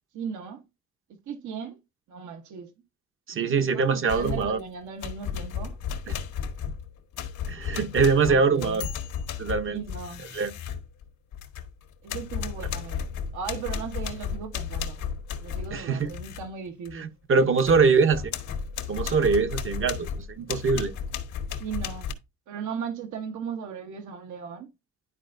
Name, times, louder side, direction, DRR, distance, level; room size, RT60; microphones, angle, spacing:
voice 1, 0.1-0.6 1.1-1.8 2.1-2.7 3.3-5.8 8.2-8.9 9.7-10.2 12.0-13.1 13.3-15.1 15.4-17.1 21.6-22.1 22.5-24.7, right 7 dB, 75° right, 1.2 m, -37 dB
voice 2, 3.3-4.6 7.5-8.8 9.4-9.8 10.3-10.5 15.7-16.1 17.0-18.3 18.9-20.1 20.4-20.9, right 5 dB, 45° right, 0.9 m, -23 dB
sound 1, 4.1-4.6 5.0-11.7 12.1-16.5 16.9-17.0 17.4-22.1, left 7 dB, 85° left, 1.3 m, -34 dB
11.0 x 4.3 x 2.6 m
cardioid pair, 90°, 30 cm